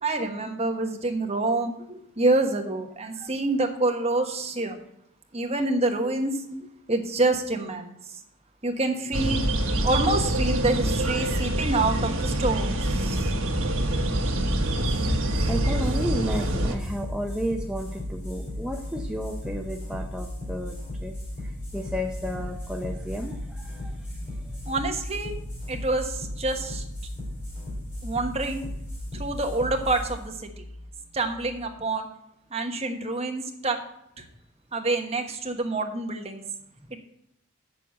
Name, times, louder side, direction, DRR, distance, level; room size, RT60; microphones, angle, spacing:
voice 1, 0.0-4.8 5.3-6.4 6.9-8.0 8.6-9.5 9.8-13.3 24.7-25.4 25.7-26.8 28.0-28.6 29.1-30.6 31.1-32.1 32.5-33.8 34.2-34.3 34.7-36.4, right 2 dB, 25° right, 4 dB, 1.2 m, -27 dB
sound 1, 9.1-16.8, right 1 dB, 65° right, 1.5 m, -25 dB
sound 2, 14.6-31.6, left 1 dB, 35° left, 4.1 m, -36 dB
voice 2, 15.5-24.7, equal, 5° right, 1 dB, 0.5 m, -33 dB
7.7 x 7.0 x 8.4 m, 0.78 s
head